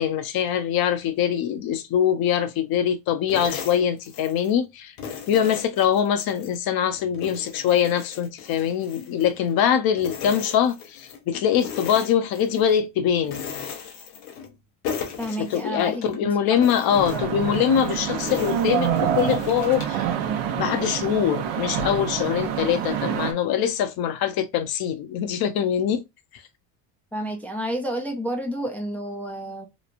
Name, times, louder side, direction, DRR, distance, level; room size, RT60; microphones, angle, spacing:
voice 1, 0.0-4.9 5.3-13.4 15.4-26.0 26.3-26.4, left 9 dB, 55° left, 0.6 m, -23 dB
sound 1, 3.3-4.6 5.0-6.6 7.0-9.7 10.0-11.2 11.6-12.8 13.2-14.6 14.8-16.2 16.6-20.0, left 7 dB, 90° left, 0.8 m, -37 dB
voice 2, 15.2-16.6 17.1-17.3 27.1-29.7, equal, 5° left, 0.3 m, -30 dB
sound 2, 16.9-23.3, right 9 dB, 80° right, 0.7 m, -27 dB
3.0 x 2.2 x 2.4 m
supercardioid pair, 90°, 44 cm